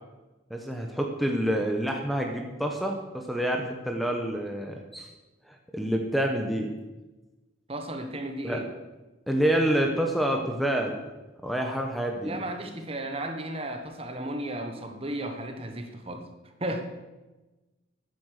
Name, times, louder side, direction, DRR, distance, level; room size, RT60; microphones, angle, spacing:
voice 1, 0.5-5.1 5.5-6.7 8.4-8.6 9.3-11.0 11.4-12.4, right 1 dB, ahead, 2 dB, 1.1 m, -27 dB
voice 2, 7.7-8.7 12.2-16.3 16.6-16.8, right 1 dB, 30° right, 5 dB, 1.4 m, -34 dB
13.0 x 9.7 x 6.7 m, 1.1 s
head